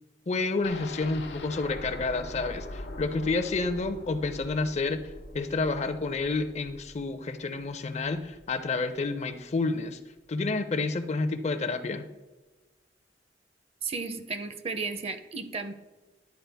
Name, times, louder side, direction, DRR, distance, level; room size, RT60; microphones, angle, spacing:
voice 1, 0.3-5.0 5.3-10.0 10.3-12.1, left 3 dB, 40° left, 10 dB, 0.5 m, -29 dB
sound 1, 0.6-8.5 8.9-9.0 9.3-9.4, left 2 dB, 80° left, 0.9 m, -43 dB
voice 2, 13.8-15.7, right 4 dB, 35° right, 9 dB, 0.5 m, -34 dB
10.5 x 4.4 x 3.4 m, 1.2 s
head